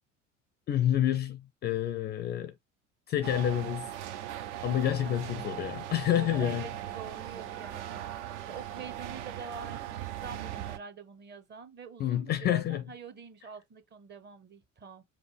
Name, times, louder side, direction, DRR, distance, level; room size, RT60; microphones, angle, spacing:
voice 1, 0.7-2.5 3.1-3.9 4.6-6.7 12.0-12.8, left 11 dB, 30° left, 0.4 m, -28 dB
sound 1, 3.2-10.8, right 12 dB, 65° right, 0.7 m, -39 dB
voice 2, 4.7-5.2 6.1-8.1 8.5-15.0, right 5 dB, 30° right, 0.9 m, -46 dB
5.2 x 2.0 x 3.3 m
figure-of-eight pair, 70°, 38 cm